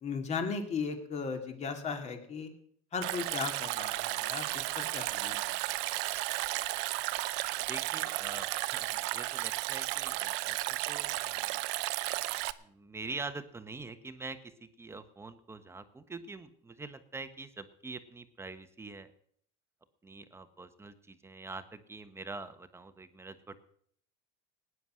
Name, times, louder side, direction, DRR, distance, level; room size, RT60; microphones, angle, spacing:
voice 1, 0.0-2.5 2.9-5.5, left 5 dB, 30° left, 5 dB, 2.6 m, -36 dB
Stream, 3.0-12.5, right 19 dB, 60° right, 0.8 m, -34 dB
voice 2, 7.6-11.6 12.6-19.1 20.0-23.6, right 3 dB, 10° right, 11 dB, 1.2 m, -45 dB
18.5 x 9.6 x 6.3 m, 0.65 s
supercardioid pair, 125°, 21 cm